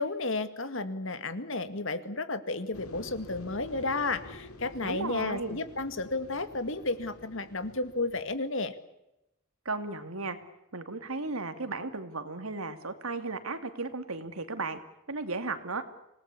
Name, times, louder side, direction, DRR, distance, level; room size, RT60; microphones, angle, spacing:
voice 1, 0.0-8.7, left 3 dB, 60° left, 11 dB, 2.1 m, -32 dB
sound 1, 2.7-8.4, left 1 dB, 90° left, 3.2 m, -48 dB
voice 2, 4.8-5.6 9.6-10.4 10.7-14.8 15.1-15.8, right 3 dB, 80° right, 9 dB, 2.7 m, -35 dB
27.0 x 18.5 x 8.6 m, 0.89 s
head